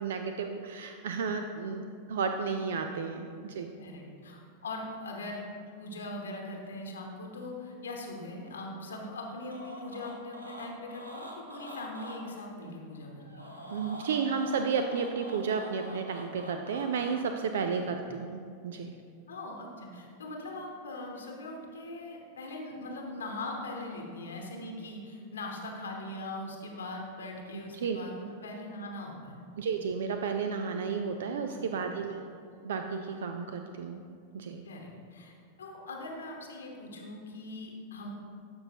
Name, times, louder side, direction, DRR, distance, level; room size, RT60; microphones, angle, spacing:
voice 1, 0.0-1.8 2.1-3.7 13.7-18.9 27.7-28.0 29.6-32.2 32.6-34.0 34.3-34.6, right 5 dB, 60° right, 6 dB, 0.4 m, -32 dB
voice 2, 3.8-5.5 5.8-13.6 17.6-18.0 19.3-29.4 31.5-31.9 34.6-38.1, left 2 dB, 70° left, 1 dB, 1.0 m, -41 dB
sound 1, 9.5-12.2 13.1-17.2, equal, 85° right, 1.0 m, -45 dB
12.0 x 5.4 x 2.9 m, 2.3 s
figure-of-eight pair, 90°, 0 cm